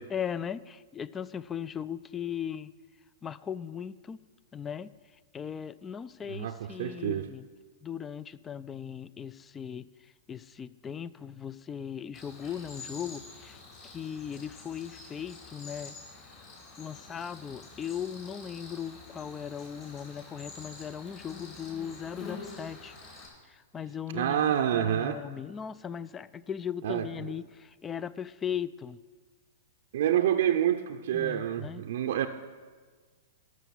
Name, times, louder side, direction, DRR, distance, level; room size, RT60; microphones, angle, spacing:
voice 1, 0.1-2.7 3.2-4.2 4.5-4.9 5.3-7.5 7.8-9.9 10.3-13.6 13.8-16.0 16.8-23.0 23.5-24.5 24.7-29.0 31.1-31.9, left 8 dB, 20° left, 18 dB, 0.4 m, -38 dB
voice 2, 6.3-7.3 24.1-25.2 26.8-27.1 29.9-32.3, right 10 dB, 60° right, 6 dB, 0.6 m, -27 dB
Cricket, 12.1-23.3, left 3 dB, 40° left, 3.7 m, -47 dB
13.0 x 6.2 x 7.1 m, 1.5 s
hypercardioid pair, 110°, 0 cm